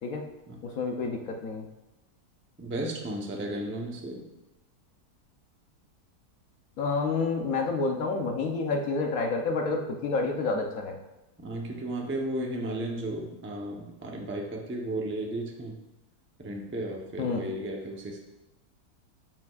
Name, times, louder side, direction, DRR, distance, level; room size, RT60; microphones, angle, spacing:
voice 1, 0.6-1.6 6.8-11.0 17.2-17.4, left 3 dB, 65° left, 2 dB, 1.1 m, -29 dB
voice 2, 2.6-4.2 11.4-15.8 16.4-18.2, right 1 dB, 15° right, 0 dB, 0.4 m, -34 dB
9.2 x 5.9 x 2.4 m, 0.99 s
omnidirectional pair, 1.8 m